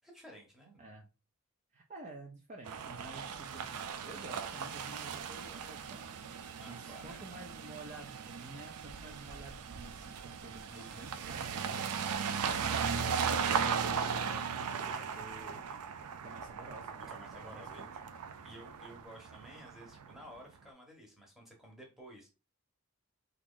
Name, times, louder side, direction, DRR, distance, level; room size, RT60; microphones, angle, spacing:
voice 1, 0.0-0.8 6.6-7.2 10.7-11.2 14.9-15.1 17.1-17.8 18.4-22.3, equal, ahead, 0 dB, 0.9 m, -53 dB
voice 2, 1.7-14.9 15.2-15.6 16.2-17.9, right 2 dB, 35° right, 0 dB, 0.5 m, -51 dB
sound 1, 2.7-20.3, right 6 dB, 90° right, 0.4 m, -37 dB
2.9 x 2.4 x 3.6 m, 0.30 s
head